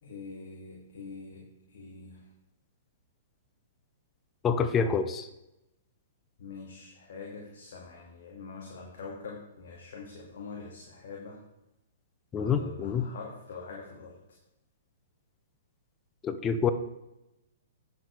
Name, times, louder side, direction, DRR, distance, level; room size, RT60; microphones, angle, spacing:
voice 1, 0.0-2.2 6.4-11.4 12.3-14.1, left 4 dB, 60° left, -2 dB, 2.3 m, -44 dB
voice 2, 4.4-5.3 12.3-13.1 16.2-16.7, left 6 dB, 20° left, 10 dB, 0.7 m, -27 dB
9.6 x 7.4 x 4.8 m, 0.92 s
hypercardioid pair, 120°, 0 cm